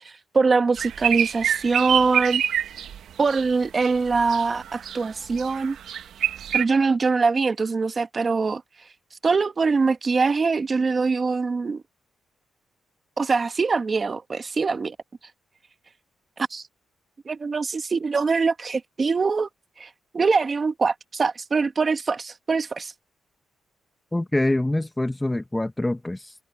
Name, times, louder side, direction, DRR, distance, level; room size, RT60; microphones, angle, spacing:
voice 1, 0.3-2.4 3.2-5.8 6.5-8.6 9.2-11.8 13.2-15.0 16.5-16.6 17.3-19.5 19.8-22.9, right 4 dB, 35° right, 1.7 m, -23 dB
sound 1, 0.8-3.5 3.8-5.0 5.3-6.6, right 9 dB, 75° right, 0.9 m, -26 dB
voice 2, 24.1-26.3, left 1 dB, 10° left, 0.7 m, -25 dB
cardioid pair, 110°, 0 cm